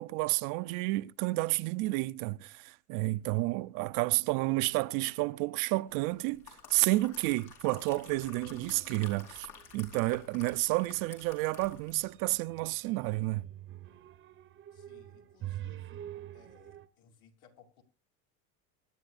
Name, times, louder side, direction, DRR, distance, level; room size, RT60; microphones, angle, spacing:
voice 1, 0.0-13.5, right 20 dB, 55° right, 0.5 m, -31 dB
sound 1, 6.1-12.2 12.5-12.7, left 7 dB, 75° left, 4.8 m, -51 dB
sound 2, 8.2-9.2 9.5-10.1 10.9-16.9, right 12 dB, 30° right, 0.8 m, -47 dB
voice 2, 14.7-16.0 16.3-17.8, left 6 dB, 55° left, 2.9 m, -62 dB
24.0 x 10.5 x 2.5 m
cardioid pair, 150°, 37 cm